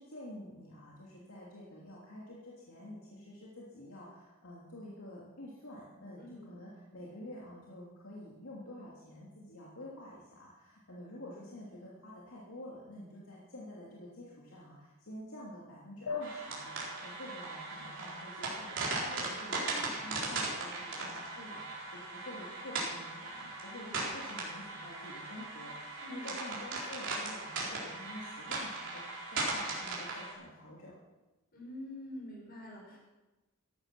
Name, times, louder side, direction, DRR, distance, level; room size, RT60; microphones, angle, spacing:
voice 1, 0.0-16.8 17.0-30.9, left 1 dB, 70° left, -5 dB, 3.0 m, -49 dB
voice 2, 6.2-6.5 19.5-19.9 20.4-20.8 23.8-24.0 26.0-26.3 31.5-33.0, left 1 dB, 45° left, -2 dB, 5.9 m, -47 dB
sound 1, 16.1-19.0, left 4 dB, 90° left, 1.1 m, -44 dB
sound 2, 16.2-30.3, right 3 dB, 60° right, 4.1 m, -38 dB
15.0 x 11.5 x 6.1 m, 1.1 s
head